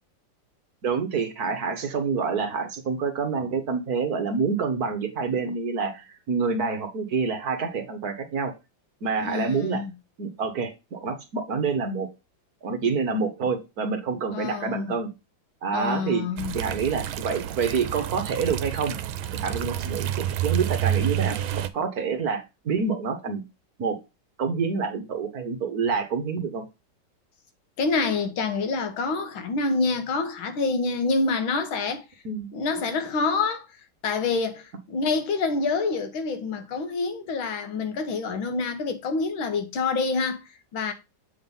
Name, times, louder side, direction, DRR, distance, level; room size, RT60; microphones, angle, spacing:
voice 1, 0.8-8.5 9.0-9.8 10.2-12.1 12.6-15.1 15.6-19.0 19.3-23.4 23.8-24.0 24.4-26.6 32.2-32.5, right 5 dB, 55° right, 1.6 m, -27 dB
voice 2, 9.2-9.9 14.3-15.0 15.7-16.6 27.8-32.1 32.5-33.7 34.0-40.4 40.7-40.9, left 4 dB, 90° left, 2.1 m, -27 dB
sound 1, 16.4-21.7, right 11 dB, 90° right, 1.5 m, -29 dB
8.0 x 3.8 x 5.4 m
omnidirectional pair, 2.1 m